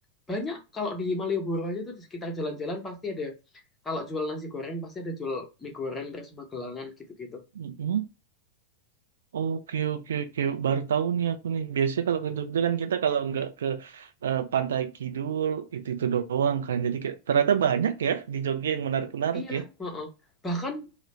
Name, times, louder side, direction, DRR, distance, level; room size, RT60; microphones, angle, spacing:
voice 1, 0.3-3.3 3.8-7.4 19.3-20.1 20.4-20.9, left 2 dB, 15° left, 0.7 m, -33 dB
voice 2, 7.6-8.0 9.3-19.6, right 8 dB, 65° right, 0.4 m, -27 dB
2.4 x 2.0 x 3.0 m
figure-of-eight pair, 90°, 0 cm